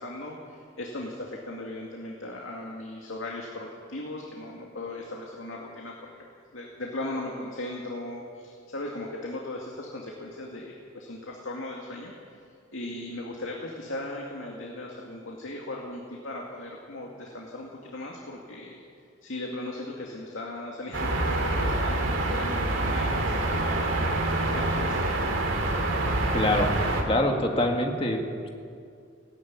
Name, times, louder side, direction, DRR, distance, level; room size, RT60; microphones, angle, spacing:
voice 1, 0.0-6.1 6.5-18.8 19.2-25.0, left 2 dB, 85° left, -1 dB, 2.3 m, -38 dB
sound 1, 20.9-27.0, right 2 dB, 80° right, 3.0 m, -26 dB
voice 2, 26.3-26.8 27.0-28.5, left 1 dB, 30° left, 2 dB, 2.0 m, -25 dB
17.5 x 16.0 x 9.6 m, 2.4 s
head